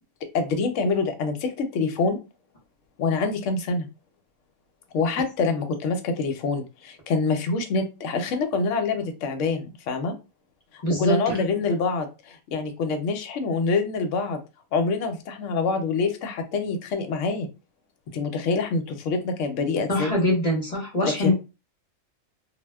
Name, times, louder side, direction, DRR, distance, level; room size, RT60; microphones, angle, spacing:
voice 1, 0.3-2.2 3.0-3.9 4.9-10.1 10.7-14.4 14.7-17.5 18.1-20.1 21.0-21.3, left 4 dB, 70° left, 6 dB, 0.9 m, -26 dB
voice 2, 10.8-11.4 19.9-21.3, left 1 dB, 35° left, -2 dB, 0.7 m, -23 dB
2.3 x 2.1 x 3.4 m, 0.30 s
omnidirectional pair, 1.5 m